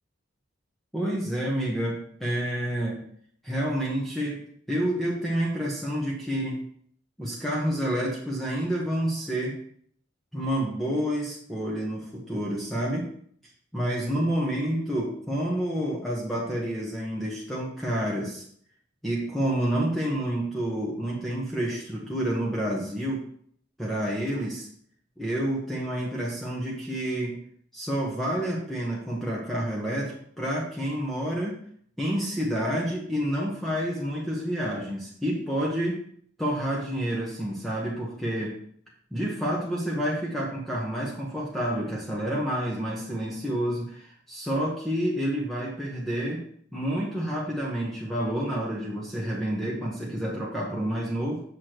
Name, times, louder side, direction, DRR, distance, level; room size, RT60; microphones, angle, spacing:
voice 1, 0.9-3.0 3.4-4.4 4.7-6.6 7.2-9.6 10.3-13.1 13.7-18.4 19.0-23.2 23.8-24.7 25.2-27.4 27.7-31.6 32.0-36.0 36.4-38.6 39.1-46.4 46.7-51.4, right 1 dB, ahead, -5 dB, 1.2 m, -29 dB
8.4 x 6.5 x 3.0 m, 0.62 s
head